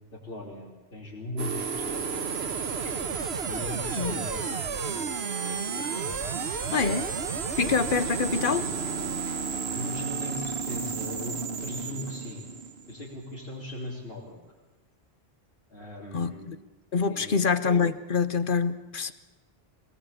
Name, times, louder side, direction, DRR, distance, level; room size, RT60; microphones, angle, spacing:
voice 1, 0.0-2.2 2.7-5.1 5.4-6.2 6.9-7.2 7.5-7.8 9.2-9.5 9.7-12.4 12.9-14.4 15.7-16.5 17.1-17.5, left 2 dB, 70° left, -7 dB, 4.7 m, -39 dB
sound 1, 1.4-13.3, right 5 dB, 80° right, 1.4 m, -32 dB
voice 2, 6.7-7.1 7.6-8.7 16.1-16.6 16.9-19.1, left 5 dB, 55° left, 13 dB, 1.2 m, -26 dB
24.0 x 19.5 x 8.7 m, 1.2 s
omnidirectional pair, 1.1 m